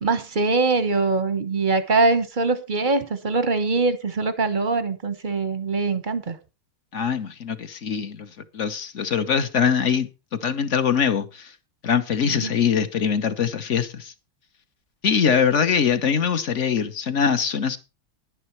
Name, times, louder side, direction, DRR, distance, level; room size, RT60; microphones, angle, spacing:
voice 1, 0.0-6.4 12.2-12.5 15.2-15.3, right 3 dB, 35° right, 0.8 m, -23 dB
voice 2, 6.9-11.5 11.8-14.1 15.0-17.8, left 7 dB, 45° left, 1.0 m, -23 dB
11.0 x 10.5 x 4.5 m
omnidirectional pair, 2.3 m